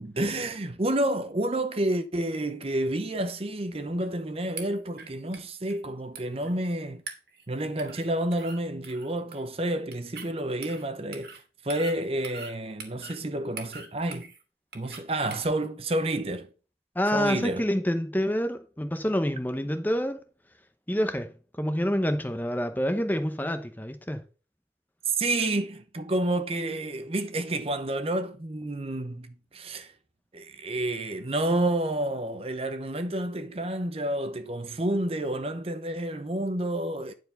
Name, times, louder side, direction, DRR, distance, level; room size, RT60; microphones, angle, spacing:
voice 1, 0.0-7.0 7.5-14.3 14.7-16.5 17.1-17.6 25.1-29.9 30.3-37.1, right 1 dB, 30° right, 0.7 m, -29 dB
sound 1, 4.6-5.1 5.3-5.4 5.7-5.8 6.2-6.7 7.1-7.4 7.8-8.1 8.3-8.6 8.8-9.5 9.9-10.3 10.6-10.8 11.1-11.4 11.7-12.5 12.8-13.2 13.6-14.4 14.7-15.0 15.3-15.5, right 5 dB, 55° right, 2.1 m, -42 dB
voice 2, 16.9-20.2 20.9-24.2, equal, 10° left, 0.8 m, -27 dB
10.0 x 4.7 x 5.5 m
head